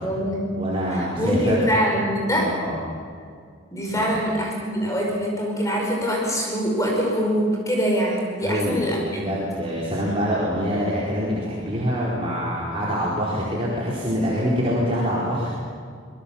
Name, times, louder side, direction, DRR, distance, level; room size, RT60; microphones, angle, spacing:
voice 1, 0.0-0.5 0.9-2.5 3.7-9.0, equal, 15° left, -1 dB, 5.3 m, -24 dB
voice 2, 0.6-1.7 2.3-2.8 3.9-4.2 8.4-8.8 9.1-15.5, equal, 25° right, -7 dB, 4.3 m, -25 dB
25.5 x 20.5 x 7.3 m, 2.2 s
head